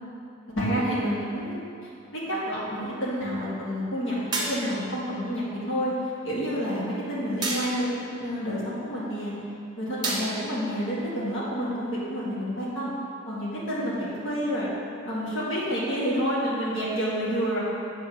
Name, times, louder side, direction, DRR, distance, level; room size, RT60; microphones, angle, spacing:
voice 1, 0.5-1.6 2.1-5.9 6.2-9.3 9.8-12.9 13.3-14.7 15.0-17.6, equal, 70° left, -9 dB, 1.7 m, -29 dB
sound 1, 4.3-4.9 7.4-8.0 10.0-10.6, right 2 dB, 20° right, 0.9 m, -30 dB
7.4 x 3.8 x 6.2 m, 2.8 s
head